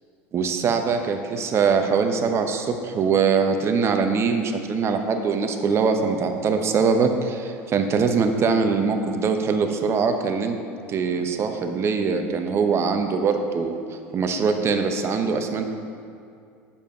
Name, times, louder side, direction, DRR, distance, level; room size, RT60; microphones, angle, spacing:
voice 1, 0.3-10.6 10.9-13.8 14.1-15.7, right 5 dB, 40° right, 6 dB, 1.0 m, -22 dB
9.0 x 7.2 x 5.0 m, 2.4 s
hypercardioid pair, 85°, 7 cm